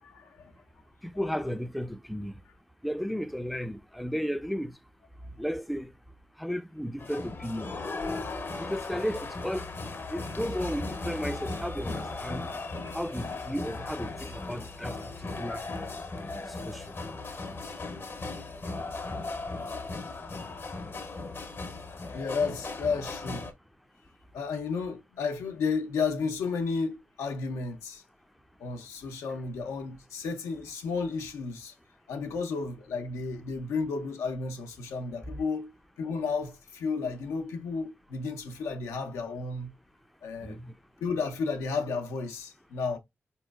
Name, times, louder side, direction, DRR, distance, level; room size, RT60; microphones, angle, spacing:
voice 1, 0.0-0.5 1.1-1.2 22.1-23.5 24.3-28.0 28.6-31.7 32.1-35.7 36.0-39.7 40.2-40.6 41.0-43.0, left 4 dB, 90° left, 0.5 m, -32 dB
voice 2, 1.0-2.4 2.8-4.7 5.4-5.9 6.4-7.7 8.6-9.7 10.1-12.5 12.9-15.0 15.4-15.6 16.2-16.9 40.4-40.7, equal, ahead, 0.4 m, -34 dB
sound 1, 7.0-23.5, left 3 dB, 50° left, 0.7 m, -37 dB
3.8 x 2.9 x 2.2 m
supercardioid pair, 40°, 5 cm